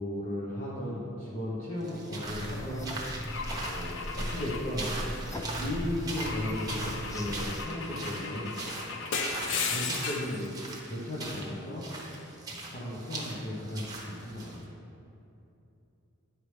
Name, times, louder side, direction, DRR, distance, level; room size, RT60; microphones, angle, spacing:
voice 1, 0.0-4.9 5.3-8.5 9.5-10.5 10.8-11.9 12.5-14.7, left 1 dB, 40° left, -7 dB, 1.0 m, -36 dB
sound 1, 1.8-14.6, right 2 dB, 20° right, 1.0 m, -40 dB
sound 2, 2.2-7.7, equal, 15° left, 0.4 m, -38 dB
Car / Engine / Glass, 3.3-5.5 6.2-10.4, left 4 dB, 60° left, 0.6 m, -36 dB
10.0 x 4.9 x 3.3 m, 2.8 s
head